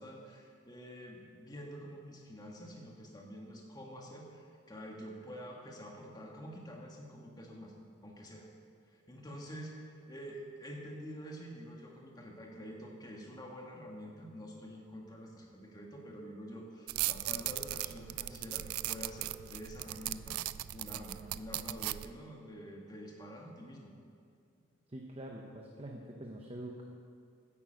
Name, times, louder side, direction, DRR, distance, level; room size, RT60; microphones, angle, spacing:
voice 1, 0.0-7.7 8.0-8.4 9.1-20.4 20.7-23.9, equal, 20° left, -1 dB, 1.6 m, -47 dB
sound 1, 16.9-22.1, right 16 dB, 85° right, 0.3 m, -38 dB
voice 2, 24.9-26.8, right 1 dB, 25° right, 0 dB, 0.8 m, -45 dB
9.8 x 9.6 x 7.7 m, 2.3 s
head